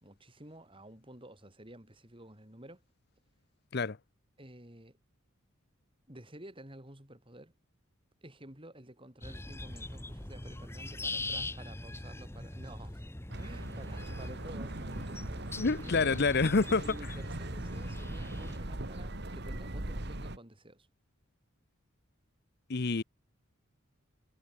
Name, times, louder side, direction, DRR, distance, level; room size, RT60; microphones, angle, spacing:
voice 1, 0.0-2.8 4.4-5.0 6.1-7.5 8.2-13.0 13.4-16.2 16.8-20.9, right 1 dB, 25° right, 4.9 m, -51 dB
sound 1, 9.2-18.6, left 2 dB, 10° left, 1.1 m, -42 dB
sound 2, 13.3-20.4, right 1 dB, 50° right, 2.2 m, -40 dB
voice 2, 15.6-16.8 22.7-23.0, left 4 dB, 50° left, 0.8 m, -27 dB
head